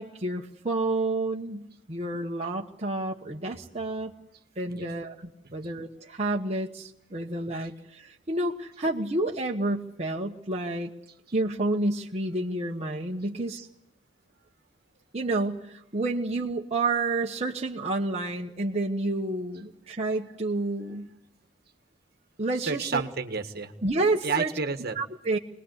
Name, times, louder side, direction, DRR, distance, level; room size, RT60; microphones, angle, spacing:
voice 1, 0.0-4.1 4.6-10.9 11.3-13.7 15.1-21.1 22.4-23.0 23.8-24.5 25.0-25.4, right 2 dB, 35° right, -1 dB, 1.2 m, -29 dB
voice 2, 22.6-23.7 24.2-25.0, right 4 dB, 55° right, 7 dB, 1.5 m, -30 dB
25.0 x 20.0 x 8.1 m, 0.82 s
head